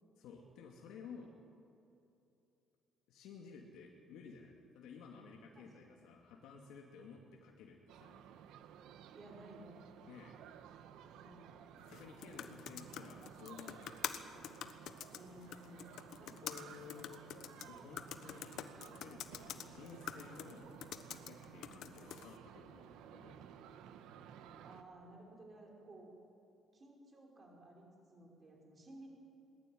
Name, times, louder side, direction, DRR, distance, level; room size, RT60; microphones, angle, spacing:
voice 1, 0.2-1.4 3.1-8.2 10.1-10.4 11.9-14.2 16.4-17.2 17.7-20.7 21.1-23.7, left 5 dB, 75° left, 0 dB, 2.6 m, -54 dB
voice 2, 5.5-6.2 9.1-9.8 11.1-11.6 15.1-15.9 16.2-17.0 24.6-26.2 26.7-29.1, right 1 dB, 25° right, 0 dB, 5.2 m, -57 dB
sound 1, 7.9-24.8, right 9 dB, 75° right, 1.5 m, -55 dB
sound 2, 11.8-22.4, left 10 dB, 60° left, 1.3 m, -48 dB
22.0 x 20.5 x 9.5 m, 2.8 s
cardioid pair, 175°, 0 cm